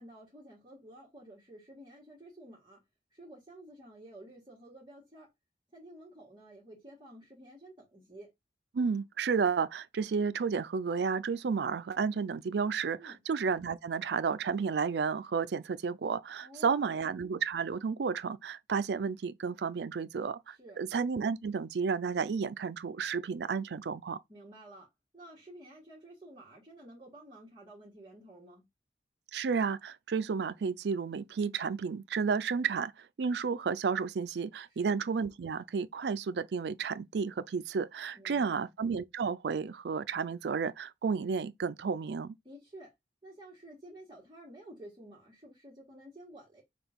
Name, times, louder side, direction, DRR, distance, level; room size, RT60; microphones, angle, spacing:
voice 1, 0.0-2.8 3.1-5.3 5.7-8.3 13.0-13.2 16.4-17.1 20.5-20.8 24.3-24.9 25.1-28.6 34.7-34.9 38.1-38.7 42.4-42.9 43.2-46.6, right 1 dB, 25° right, 1.5 m, -52 dB
voice 2, 8.7-24.2 29.3-42.3, right 5 dB, 75° right, 0.4 m, -32 dB
5.8 x 2.4 x 3.5 m
head